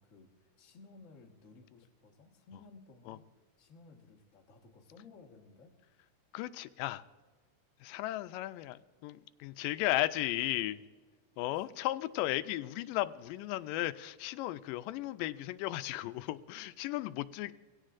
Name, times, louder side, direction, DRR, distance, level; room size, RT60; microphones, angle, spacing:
voice 1, 0.0-3.2 3.6-5.8 11.3-11.6, left 3 dB, 40° left, 0 dB, 1.1 m, -57 dB
voice 2, 6.3-7.0 7.8-10.8 11.4-17.5, left 16 dB, 90° left, 13 dB, 2.2 m, -35 dB
23.0 x 16.5 x 2.5 m, 1.4 s
omnidirectional pair, 3.8 m